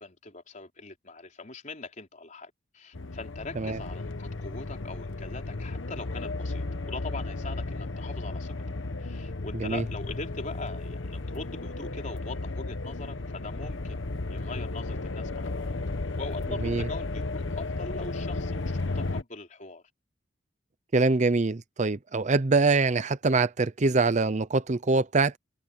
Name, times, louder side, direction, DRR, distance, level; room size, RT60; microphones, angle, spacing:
voice 1, 0.0-8.5 9.0-15.7 16.2-19.8, left 3 dB, 40° left, 3.9 m, -41 dB
sound 1, 2.9-19.2, left 2 dB, 80° left, 1.2 m, -34 dB
voice 2, 20.9-25.4, right 3 dB, 40° right, 0.6 m, -24 dB
head